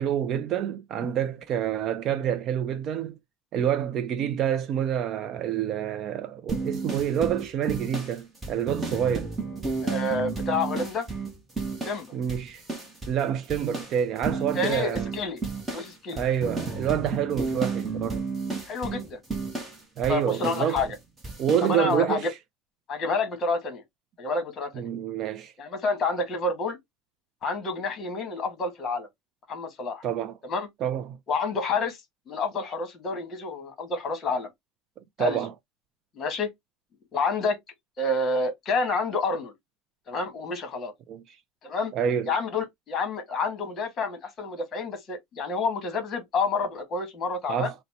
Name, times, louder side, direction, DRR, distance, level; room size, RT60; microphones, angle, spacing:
voice 1, 0.0-3.2 3.5-9.3 12.1-12.6 13.1-15.1 16.1-18.2 20.0-20.8 21.4-22.4 24.8-25.5 30.0-30.4 30.8-31.2 35.2-35.5 41.1-41.2 41.9-42.3 47.5-47.7, right 9 dB, 35° right, 0.3 m, -27 dB
sound 1, 6.5-12.0 12.3-13.2 13.5-21.0 21.2-21.7, right 4 dB, 15° right, 1.0 m, -32 dB
voice 2, 9.8-11.1 11.8-12.1 14.3-15.4 15.7-16.2 18.7-19.2 20.1-20.9 21.6-22.3 22.9-23.8 24.2-24.9 25.6-26.8 27.4-29.1 29.5-30.0 30.4-30.7 31.3-32.0 32.3-34.5 35.2-35.4 36.1-36.5 37.1-37.6 38.0-39.5 40.1-40.9 41.6-41.9 42.3-47.7, left 3 dB, 25° left, 1.4 m, -29 dB
3.9 x 2.1 x 4.2 m
cardioid pair, 170°, 0 cm